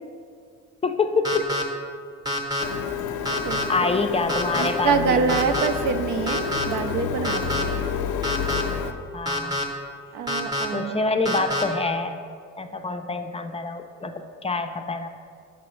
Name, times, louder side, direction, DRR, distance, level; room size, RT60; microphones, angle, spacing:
voice 1, 0.8-1.4 3.7-5.7 9.1-9.5 10.7-12.3 12.6-15.1, left 3 dB, 20° left, 6 dB, 0.4 m, -26 dB
sound 1, 1.2-1.6 2.3-2.6 3.3-3.6 4.3-4.7 5.3-5.7 6.3-6.6 7.2-7.6 8.2-8.6 9.3-9.6 10.3-10.7 11.3-11.6, left 1 dB, 15° right, 0.8 m, -26 dB
Printer, 2.6-8.9, left 6 dB, 90° left, 0.5 m, -29 dB
voice 2, 4.6-7.9 10.1-11.1, right 6 dB, 75° right, 8 dB, 0.5 m, -26 dB
6.8 x 5.9 x 3.1 m, 2.2 s
cardioid pair, 90°, 30 cm